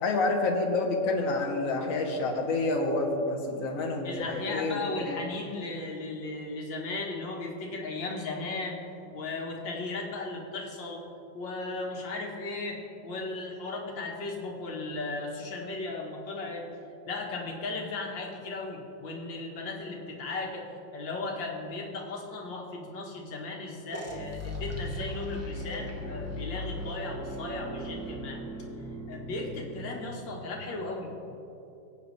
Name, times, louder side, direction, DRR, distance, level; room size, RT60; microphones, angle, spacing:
voice 1, 0.0-5.2, left 2 dB, 50° left, 1 dB, 1.5 m, -28 dB
voice 2, 4.0-8.8 9.1-11.1 11.3-16.7 17.1-28.4 29.1-31.1, left 3 dB, 75° left, -1 dB, 2.1 m, -36 dB
sound 1, 23.9-30.5, equal, 10° right, 0.8 m, -38 dB
18.0 x 8.6 x 3.2 m, 2.9 s
omnidirectional pair, 2.0 m